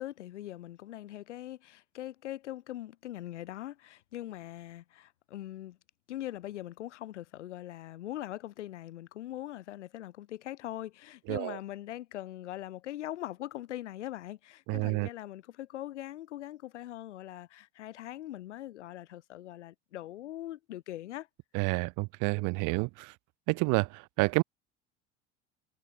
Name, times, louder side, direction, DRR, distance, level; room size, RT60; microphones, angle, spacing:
voice 1, 0.0-5.8 6.1-21.3, left 13 dB, 85° left, 7.0 m, -41 dB
voice 2, 14.7-15.1 21.5-23.1 23.5-24.4, right 29 dB, 60° right, 1.1 m, -29 dB
hypercardioid pair, 75°, 34 cm